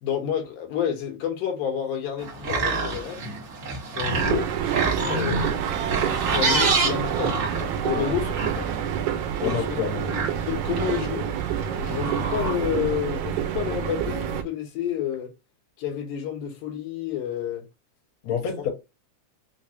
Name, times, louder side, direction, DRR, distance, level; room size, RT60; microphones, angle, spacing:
voice 1, 0.0-3.2 3.9-8.7 9.4-9.8 10.5-11.3 11.8-15.3 15.8-17.6, left 9 dB, 90° left, 2.6 m, -30 dB
sound 1, 2.2-13.0, right 3 dB, 55° right, 1.0 m, -29 dB
sound 2, 4.1-14.4, right 9 dB, 80° right, 1.9 m, -28 dB
voice 2, 9.4-10.1 18.2-18.7, left 7 dB, 65° left, 2.3 m, -28 dB
5.4 x 2.0 x 2.7 m
omnidirectional pair, 3.5 m